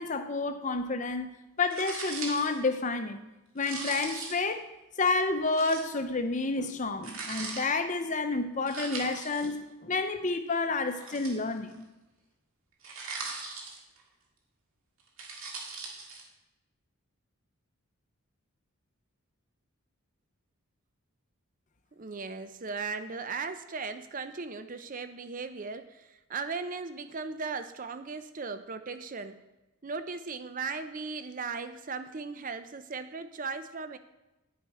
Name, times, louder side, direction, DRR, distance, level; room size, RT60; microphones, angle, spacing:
voice 1, 0.0-3.2 3.5-4.6 5.0-11.8, left 3 dB, 35° left, 8 dB, 0.7 m, -30 dB
sound 1, 1.7-2.6 3.6-4.5 5.6-5.9 7.0-7.6 8.7-9.5 10.9-11.7 12.8-14.0 15.0-16.2, right 4 dB, 70° right, 2.1 m, -39 dB
voice 2, 22.0-29.4 29.8-34.0, right 4 dB, 35° right, 10 dB, 0.5 m, -37 dB
10.0 x 7.3 x 4.8 m, 1.0 s
head